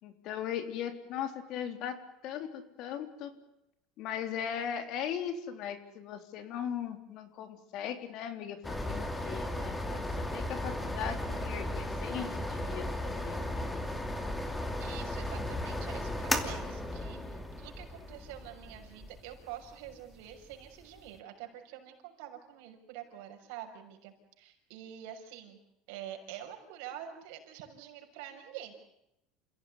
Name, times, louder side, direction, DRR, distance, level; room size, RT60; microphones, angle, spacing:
voice 1, 0.0-3.4 4.0-14.0, left 9 dB, 50° left, 9 dB, 3.7 m, -39 dB
sound 1, 8.6-21.1, left 1 dB, 10° left, 2.6 m, -36 dB
voice 2, 14.8-25.6 25.9-28.7, right 10 dB, 75° right, 4 dB, 6.3 m, -46 dB
29.0 x 16.5 x 9.7 m, 0.85 s
cardioid pair, 145°, 0 cm